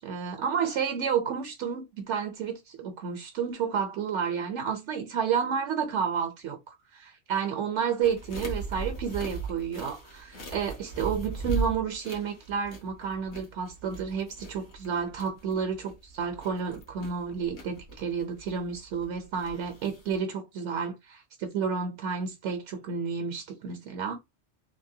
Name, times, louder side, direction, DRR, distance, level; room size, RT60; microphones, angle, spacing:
voice 1, 0.0-24.2, right 6 dB, 80° right, 1.0 m, -31 dB
sound 1, 8.0-20.2, right 4 dB, 70° left, 1.3 m, -38 dB
3.3 x 2.1 x 2.7 m
omnidirectional pair, 1.2 m